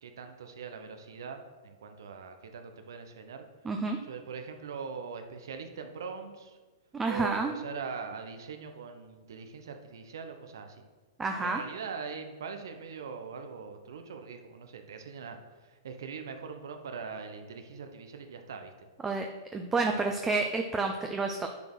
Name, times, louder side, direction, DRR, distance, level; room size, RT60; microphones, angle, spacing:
voice 1, 0.0-3.5 4.1-6.6 7.1-10.8 11.4-18.9 19.9-20.1, right 5 dB, 75° right, 6 dB, 1.1 m, -42 dB
voice 2, 3.6-4.0 6.9-7.6 11.2-11.6 19.0-19.3 19.5-21.5, right 3 dB, 15° right, 4 dB, 0.7 m, -29 dB
10.0 x 4.5 x 6.3 m, 1.4 s
hypercardioid pair, 120°, 2 cm